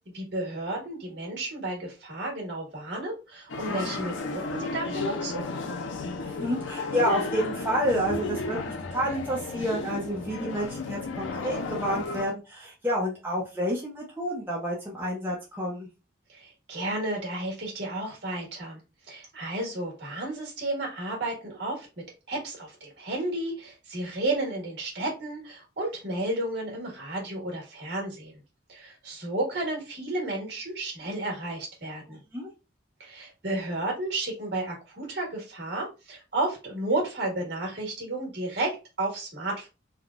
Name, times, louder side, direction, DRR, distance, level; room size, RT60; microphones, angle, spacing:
voice 1, 0.1-5.4 16.3-21.9 22.3-28.4 28.7-32.2 33.0-39.7, right 2 dB, 60° right, -2 dB, 1.5 m, -32 dB
sound 1, 3.5-12.2, left 3 dB, 80° left, 0.5 m, -33 dB
voice 2, 6.2-15.9 32.1-32.5, equal, 10° right, -4 dB, 0.6 m, -29 dB
3.5 x 2.3 x 2.4 m, 0.29 s
head